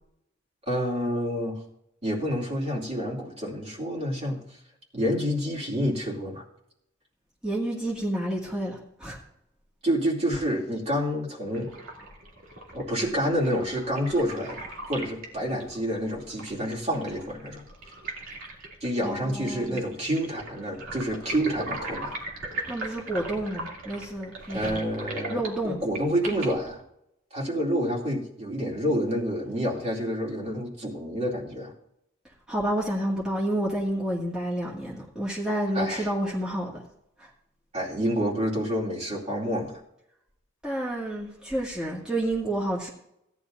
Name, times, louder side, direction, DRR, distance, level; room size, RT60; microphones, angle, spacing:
voice 1, 0.7-1.6 2.0-4.4 4.9-6.4 9.8-11.7 12.7-17.6 18.8-22.1 24.5-26.8 27.3-31.7 35.7-36.1 37.7-39.8, equal, 30° right, -3 dB, 2.7 m, -28 dB
voice 2, 7.4-9.2 19.0-19.8 22.7-24.8 25.3-25.8 32.5-36.8 37.2-37.3 40.6-42.9, right 1 dB, 5° right, -6 dB, 1.9 m, -29 dB
sound 1, 11.5-26.8, right 2 dB, 80° right, 2.6 m, -39 dB
17.0 x 10.5 x 2.6 m, 0.76 s
head